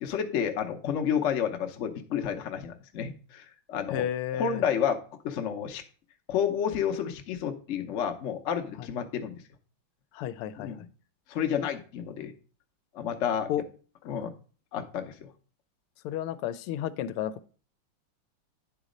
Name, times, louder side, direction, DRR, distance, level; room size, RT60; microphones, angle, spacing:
voice 1, 0.0-4.0 4.3-5.0 5.2-5.8 6.3-9.3 10.6-10.9 11.3-12.3 12.9-13.5 14.1-14.3 14.7-15.3, left 8 dB, 60° left, 5 dB, 0.8 m, -30 dB
voice 2, 3.9-4.6 8.8-8.9 10.1-10.9 13.5-13.6 16.0-17.5, left 11 dB, 85° left, 14 dB, 1.5 m, -32 dB
9.6 x 4.0 x 5.0 m, 0.40 s
omnidirectional pair, 2.4 m